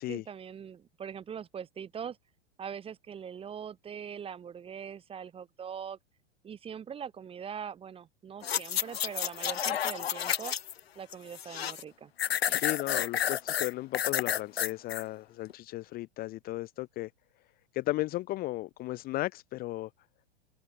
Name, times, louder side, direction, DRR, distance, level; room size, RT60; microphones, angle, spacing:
voice 1, 0.0-2.2 2.6-6.0 6.4-10.5 10.9-12.1 12.5-12.6, right 8 dB, 20° right, 1.3 m, -42 dB
sound 1, 8.4-10.8 11.1-11.8 12.2-15.0 15.5-15.6, left 9 dB, 70° left, 1.1 m, -30 dB
voice 2, 12.5-17.1 17.7-19.9, left 17 dB, 30° left, 0.8 m, -35 dB
open air
figure-of-eight pair, 95°, 32 cm